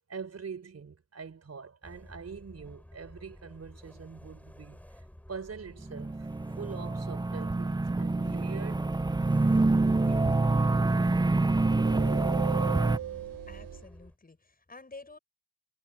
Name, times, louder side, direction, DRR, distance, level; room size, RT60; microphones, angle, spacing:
voice 1, 0.1-4.8 5.3-6.3 6.6-8.9 9.9-10.9, right 6 dB, 45° right, 4.6 m, -43 dB
sound 1, 1.8-14.2, left 1 dB, 5° left, 3.7 m, -51 dB
sound 2, 5.9-13.0, right 2 dB, 10° right, 0.7 m, -26 dB
sound 3, 9.2-13.9, right 12 dB, 70° right, 1.2 m, -40 dB
voice 2, 13.5-15.2, left 3 dB, 25° left, 7.4 m, -50 dB
cardioid pair, 85°, 35 cm